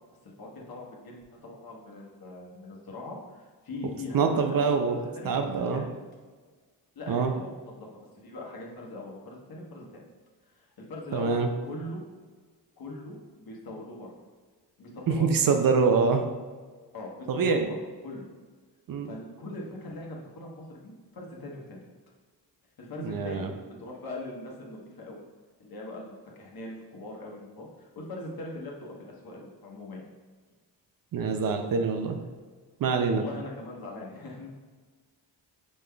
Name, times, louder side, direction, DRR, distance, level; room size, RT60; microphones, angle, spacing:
voice 1, 0.2-5.9 6.9-10.0 10.4-12.0 12.8-14.1 14.8-15.5 16.9-17.7 18.0-18.3 19.0-21.8 22.8-25.2 25.6-30.1 33.1-34.5, left 2 dB, 55° left, -2 dB, 1.2 m, -41 dB
voice 2, 4.1-5.0 5.2-5.8 7.1-7.3 11.1-11.5 15.1-16.2 17.3-17.7 18.9-19.1 23.0-23.5 31.1-32.2 32.8-33.2, right 5 dB, 55° right, 5 dB, 0.5 m, -25 dB
5.2 x 3.6 x 2.3 m, 1.5 s
cardioid pair, 75°, 43 cm